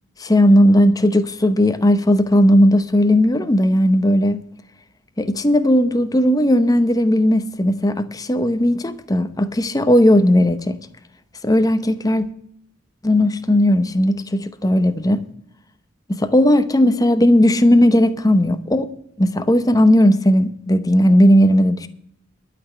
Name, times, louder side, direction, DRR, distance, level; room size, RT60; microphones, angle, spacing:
voice 1, 0.2-4.4 5.2-10.8 11.4-12.3 13.0-15.2 16.2-18.9 19.2-21.9, left 1 dB, 20° left, 0.8 m, -16 dB
12.0 x 6.1 x 9.1 m
head